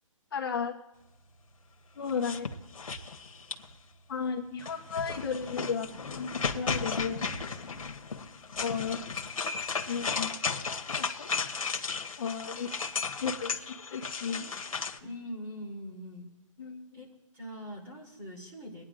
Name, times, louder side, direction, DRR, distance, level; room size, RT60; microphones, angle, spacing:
voice 1, 0.3-0.7 2.0-2.5 4.1-5.9 6.1-7.7 8.6-9.0 9.9-10.4 10.9-11.3 12.2-12.7 13.2-14.5 16.6-16.9, left 6 dB, 45° left, 1 dB, 1.3 m, -34 dB
sound 1, 2.1-3.8 4.6-15.0, left 5 dB, 90° left, 1.4 m, -35 dB
voice 2, 15.0-16.3 16.9-17.1 17.3-18.8, equal, 15° right, -2 dB, 2.8 m, -42 dB
24.5 x 9.6 x 2.5 m, 1.0 s
hypercardioid pair, 160°, 17 cm